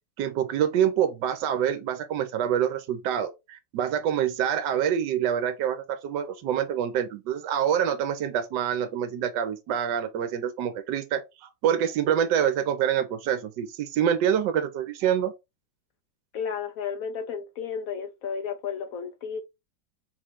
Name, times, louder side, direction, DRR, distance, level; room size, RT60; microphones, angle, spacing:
voice 1, 0.2-15.3, right 9 dB, 75° right, 1.3 m, -26 dB
voice 2, 16.3-19.4, left 6 dB, 75° left, 0.8 m, -33 dB
4.2 x 3.2 x 3.5 m
omnidirectional pair, 2.0 m